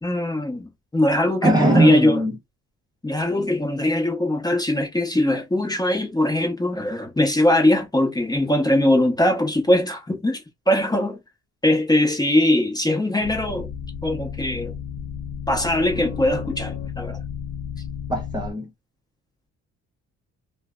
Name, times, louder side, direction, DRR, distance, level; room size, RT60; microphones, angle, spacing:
voice 1, 0.0-2.2 3.0-10.4 10.7-11.2 11.6-13.7 14.0-14.7 15.5-17.2, left 1 dB, 15° left, 0.9 m, -21 dB
voice 2, 1.4-2.4 18.1-18.7, right 1 dB, 15° right, 0.8 m, -20 dB
sound 1, 13.2-18.5, left 7 dB, 60° left, 0.5 m, -33 dB
2.6 x 2.1 x 2.3 m
cardioid pair, 90°, 30 cm